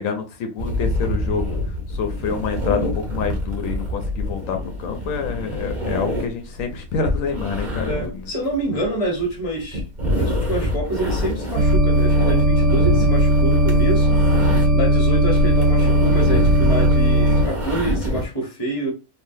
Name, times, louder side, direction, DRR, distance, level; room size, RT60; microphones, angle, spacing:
voice 1, 0.0-1.6 1.9-8.3 8.7-8.8 14.4-14.8, left 6 dB, 80° left, 1.0 m, -27 dB
sound 1, 0.6-14.9 15.2-18.3, left 1 dB, 35° right, 1.2 m, -26 dB
voice 2, 7.8-9.8 10.1-14.2 14.7-18.9, right 1 dB, 30° left, 0.9 m, -27 dB
sound 2, 11.5-17.4, right 1 dB, 60° right, 1.2 m, -17 dB
3.4 x 2.4 x 2.6 m
omnidirectional pair, 1.4 m